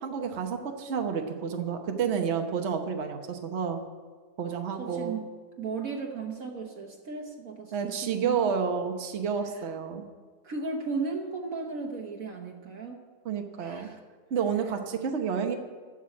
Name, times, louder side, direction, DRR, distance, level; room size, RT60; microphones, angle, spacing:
voice 1, 0.0-3.8 4.4-5.2 7.7-10.0 13.2-13.9 14.3-15.6, right 6 dB, 50° right, 4 dB, 1.2 m, -30 dB
voice 2, 4.8-5.3 5.6-8.6 10.4-13.0 13.6-14.0, right 4 dB, 65° right, 1 dB, 1.6 m, -35 dB
15.0 x 5.6 x 9.7 m, 1.5 s
omnidirectional pair, 1.6 m